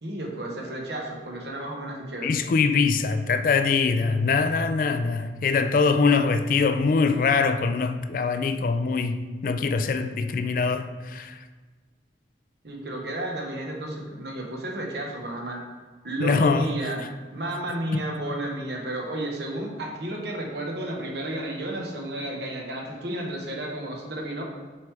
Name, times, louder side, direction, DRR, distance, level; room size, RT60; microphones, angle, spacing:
voice 1, 0.0-2.4 12.6-15.6 16.0-17.0 17.3-24.4, right 1 dB, 70° right, 1.1 m, -32 dB
voice 2, 2.2-11.4 16.2-16.7 17.9-18.0, left 4 dB, 50° left, 0.3 m, -23 dB
6.8 x 4.8 x 3.3 m
head